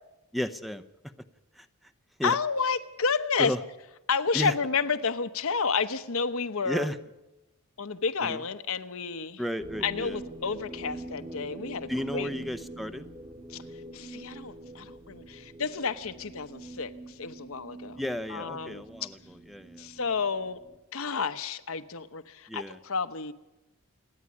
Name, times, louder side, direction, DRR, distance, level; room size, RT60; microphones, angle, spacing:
voice 1, 0.3-0.8 1.6-1.7 2.2-2.4 3.4-3.6 4.3-4.5 6.6-7.0 8.2-8.4 9.4-10.2 11.9-13.1 18.0-19.9 22.5-22.8, equal, ahead, 11 dB, 0.7 m, -33 dB
voice 2, 2.2-3.5 4.1-6.9 7.8-9.4 9.8-12.3 13.5-13.6 13.9-18.0 18.3-19.1 19.8-20.6 20.9-23.3, left 5 dB, 70° left, 10 dB, 1.0 m, -30 dB
sound 1, 9.6-20.8, right 2 dB, 25° right, 1.7 m, -44 dB
28.0 x 9.9 x 9.7 m, 1.0 s
head